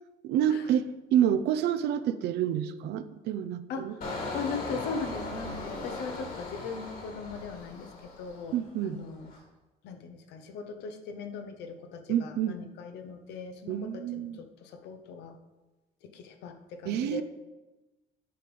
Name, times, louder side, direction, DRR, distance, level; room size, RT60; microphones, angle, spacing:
voice 1, 0.2-3.9 8.5-9.0 12.1-12.6 13.7-14.4 16.9-17.2, right 10 dB, 75° right, 12 dB, 0.6 m, -28 dB
voice 2, 3.7-9.3 9.8-15.4 16.0-17.2, left 5 dB, 85° left, 7 dB, 1.0 m, -40 dB
Engine, 4.0-8.7 9.0-9.4, left 2 dB, 55° left, 2.7 m, -38 dB
9.3 x 5.2 x 5.5 m, 1.1 s
cardioid pair, 110°, 17 cm